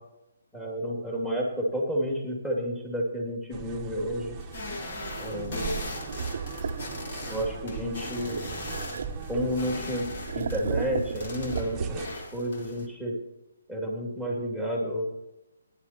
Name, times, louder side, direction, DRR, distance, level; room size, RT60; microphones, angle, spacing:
voice 1, 0.5-4.4 5.2-5.7 7.3-8.4 9.3-10.1 10.3-12.0 12.3-13.1 13.7-15.1, equal, 5° left, -1 dB, 2.4 m, -30 dB
sound 1, 3.5-12.1, right 7 dB, 15° right, 1.0 m, -40 dB
sound 2, 4.4-12.9, left 2 dB, 55° left, 2.1 m, -39 dB
sound 3, 6.0-7.4 8.2-9.7 10.2-12.2, right 6 dB, 60° right, 0.6 m, -35 dB
18.0 x 10.0 x 2.9 m, 0.95 s
hypercardioid pair, 150°, 0 cm